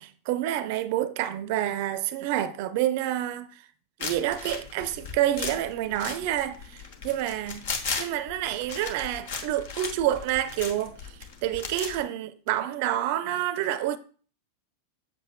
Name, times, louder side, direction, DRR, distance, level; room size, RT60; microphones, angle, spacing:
voice 1, 0.0-3.6 4.0-7.7 8.0-14.0, right 12 dB, 55° right, 0.5 m, -28 dB
sound 1, 4.0-12.0, left 5 dB, 60° left, 1.2 m, -36 dB
7.6 x 6.9 x 2.2 m
figure-of-eight pair, 95°, 0 cm